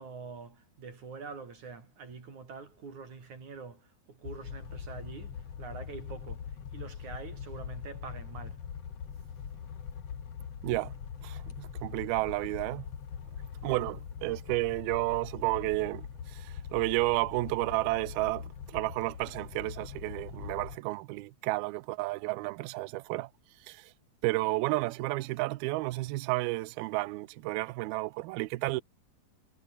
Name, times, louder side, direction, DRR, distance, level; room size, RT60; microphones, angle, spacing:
voice 1, 0.0-8.6, right 5 dB, 40° right, 5.7 m, -45 dB
sound 1, 4.2-20.8, left 7 dB, 45° left, 2.5 m, -42 dB
voice 2, 11.2-12.9 13.6-23.3 23.6-23.9 24.2-28.8, right 21 dB, 75° right, 2.3 m, -32 dB
omnidirectional pair, 5.1 m